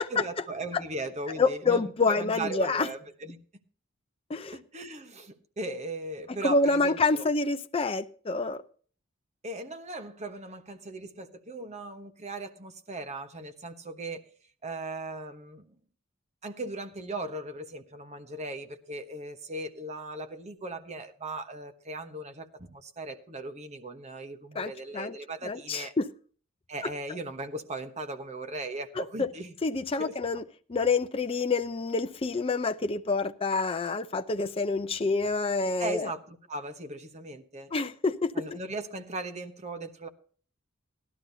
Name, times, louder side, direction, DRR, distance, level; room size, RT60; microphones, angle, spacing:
voice 1, 0.1-3.4 4.5-7.2 9.4-14.3 14.6-15.8 16.4-25.9 26.7-29.5 30.0-30.2 35.8-37.7 38.3-40.1, right 2 dB, 35° right, 1.1 m, -38 dB
voice 2, 1.4-2.9 4.3-4.6 5.7-5.8 6.4-8.6 24.5-25.2 25.4-26.1 29.0-29.3 29.6-30.4 30.7-36.1 37.7-38.3, left 3 dB, 25° left, 0.5 m, -27 dB
16.5 x 12.0 x 2.7 m
head